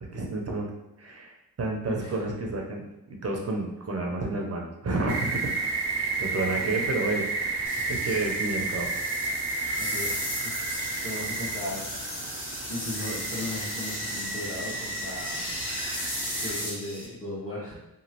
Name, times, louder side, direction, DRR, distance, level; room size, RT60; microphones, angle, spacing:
voice 1, 0.0-0.7 1.0-5.5 6.0-8.9, right 2 dB, 40° right, 1 dB, 0.7 m, -31 dB
voice 2, 1.8-2.2 9.8-10.5 11.0-11.9 12.7-15.4 16.4-17.8, left 1 dB, 35° left, -6 dB, 1.3 m, -36 dB
sound 1, 5.1-16.6, right 3 dB, 85° right, 0.6 m, -32 dB
sound 2, 7.6-17.0, left 1 dB, 55° left, 1.2 m, -36 dB
3.0 x 2.4 x 2.9 m, 0.96 s
cardioid pair, 80°, 38 cm